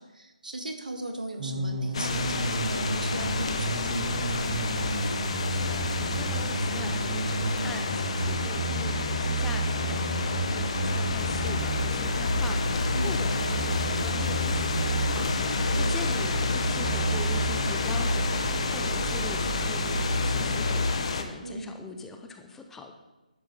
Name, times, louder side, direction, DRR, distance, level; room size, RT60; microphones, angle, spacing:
voice 1, 0.0-4.6 12.9-13.3 15.7-16.0 21.4-21.8, right 2 dB, 80° right, 5 dB, 1.5 m, -38 dB
sound 1, 1.4-20.9, right 2 dB, 30° right, 1.4 m, -30 dB
sound 2, 1.9-21.2, left 4 dB, 45° left, 1.0 m, -30 dB
voice 2, 5.5-22.9, left 4 dB, 5° left, 4 dB, 0.6 m, -43 dB
11.0 x 6.6 x 4.1 m, 1.1 s
figure-of-eight pair, 150°, 4 cm